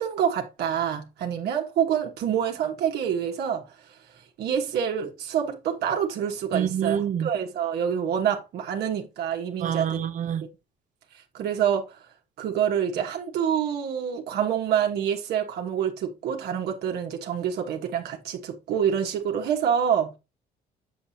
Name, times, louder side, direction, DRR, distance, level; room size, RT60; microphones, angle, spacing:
voice 1, 0.0-3.6 4.4-10.0 11.3-12.0 12.4-20.1, right 8 dB, 70° right, 1.5 m, -27 dB
voice 2, 6.5-7.3 9.6-10.4, right 9 dB, 50° right, 0.8 m, -26 dB
7.1 x 6.9 x 2.8 m
cardioid pair, 110°, 17 cm